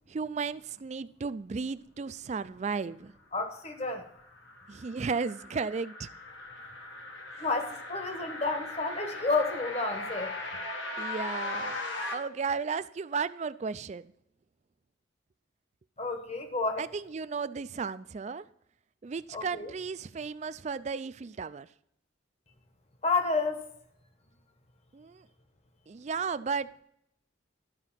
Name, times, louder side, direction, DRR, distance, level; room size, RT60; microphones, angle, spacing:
voice 1, 0.1-3.1 4.7-6.1 7.3-7.5 11.0-11.8 12.1-14.1 16.8-18.5 19.0-21.7 24.9-25.3 25.9-26.7, right 5 dB, 35° right, 0.3 m, -34 dB
voice 2, 3.3-4.1 7.4-10.4 16.0-16.8 19.3-19.7 23.0-23.7, left 3 dB, 35° left, 1.2 m, -30 dB
sound 1, 3.8-12.1, left 2 dB, 80° left, 1.7 m, -39 dB
12.0 x 5.0 x 5.7 m
head